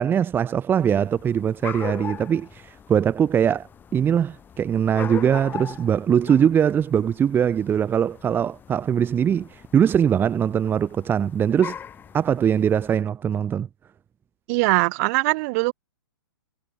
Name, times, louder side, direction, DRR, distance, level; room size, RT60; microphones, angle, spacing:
voice 1, 0.0-11.7 12.1-13.7, right 8 dB, 15° right, 2.5 m, -21 dB
sound 1, 0.8-13.0, left 8 dB, 15° left, 2.4 m, -40 dB
voice 2, 14.5-15.7, right 27 dB, 40° right, 3.8 m, -21 dB
hypercardioid pair, 140°, 13 cm